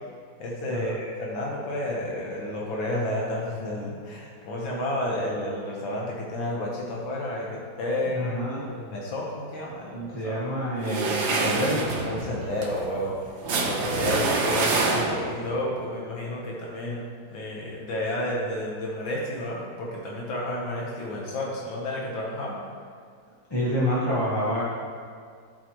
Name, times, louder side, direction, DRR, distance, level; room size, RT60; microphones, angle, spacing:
voice 1, 0.4-8.4 8.7-10.4 12.1-13.2 13.6-17.0 17.3-22.6, left 1 dB, 85° left, -4 dB, 1.8 m, -31 dB
voice 2, 8.1-8.7 9.9-11.9 23.5-24.6, equal, 20° left, -8 dB, 0.6 m, -27 dB
sound 1, 10.8-15.5, right 3 dB, 85° right, 1.6 m, -26 dB
12.0 x 4.5 x 2.9 m, 2.1 s
omnidirectional pair, 2.1 m